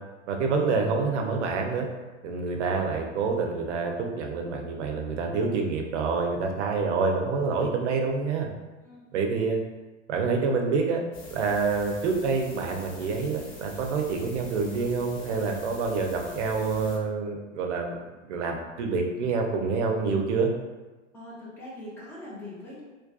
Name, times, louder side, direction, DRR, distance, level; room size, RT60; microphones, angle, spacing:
voice 1, 0.3-1.9 2.2-8.5 9.1-9.6 10.1-11.0 11.3-18.0 18.3-20.5, right 4 dB, 60° right, 2 dB, 0.5 m, -27 dB
voice 2, 8.8-9.3 21.1-22.8, left 1 dB, 5° left, -7 dB, 0.3 m, -42 dB
sound 1, 11.1-17.0, left 1 dB, 40° left, 0.9 m, -45 dB
2.5 x 2.2 x 2.3 m, 1.2 s
figure-of-eight pair, 95°, 39 cm